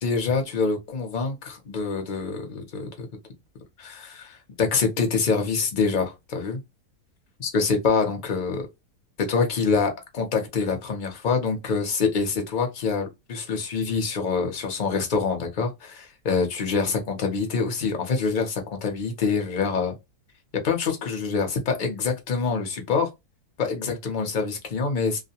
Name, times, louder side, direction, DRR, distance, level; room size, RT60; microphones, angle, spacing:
voice 1, 0.0-3.1 3.8-6.6 7.4-8.7 9.2-19.9 20.6-23.1 23.6-25.2, left 5 dB, 45° left, 0.6 m, -25 dB
2.4 x 2.1 x 2.7 m
omnidirectional pair, 1.6 m